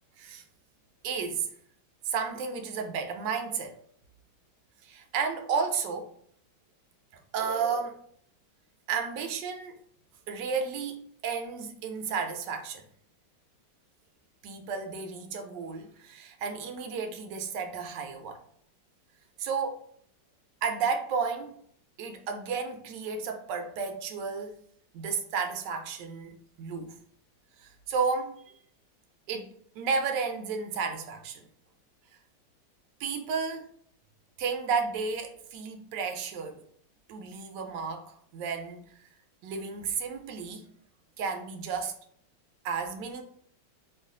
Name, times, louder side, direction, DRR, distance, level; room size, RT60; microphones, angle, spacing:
voice 1, 1.0-1.5 2.0-3.7 4.8-6.1 7.3-8.0 8.9-9.8 10.3-12.8 14.4-18.4 19.4-19.8 20.6-21.5 22.0-24.6 24.9-27.0 27.6-28.4 29.3-29.5 29.8-31.4 33.0-33.7 34.4-36.6 37.1-38.8 39.4-40.7 41.2-42.0 42.6-43.2, right 5 dB, 75° right, 1.2 m, -32 dB
3.1 x 2.4 x 3.6 m
omnidirectional pair, 2.1 m